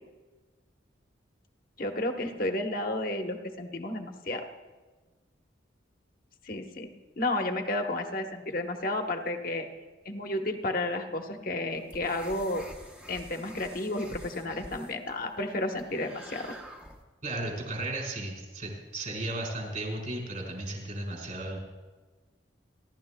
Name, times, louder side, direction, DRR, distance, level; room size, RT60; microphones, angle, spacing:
voice 1, 1.8-4.5 6.4-6.9 7.2-9.7 10.0-12.6 13.1-16.6, left 2 dB, 45° left, 4 dB, 1.1 m, -32 dB
sound 1, 11.7-17.0, equal, 5° right, 0.9 m, -47 dB
voice 2, 17.2-21.6, right 2 dB, 45° right, 0 dB, 4.4 m, -35 dB
29.0 x 12.0 x 2.3 m, 1.3 s
head